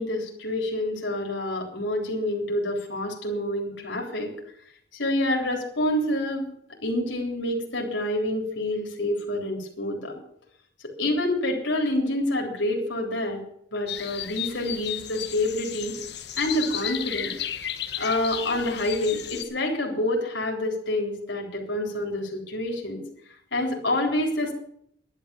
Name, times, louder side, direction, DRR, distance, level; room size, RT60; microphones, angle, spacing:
voice 1, 0.0-4.3 4.9-6.5 6.8-10.1 11.0-13.4 13.7-15.9 16.4-17.3 18.0-23.0 23.5-24.5, left 1 dB, 80° left, 0 dB, 3.6 m, -27 dB
sound 1, 13.9-19.4, left 10 dB, 60° left, 1.3 m, -34 dB
12.0 x 11.0 x 7.0 m, 0.68 s
head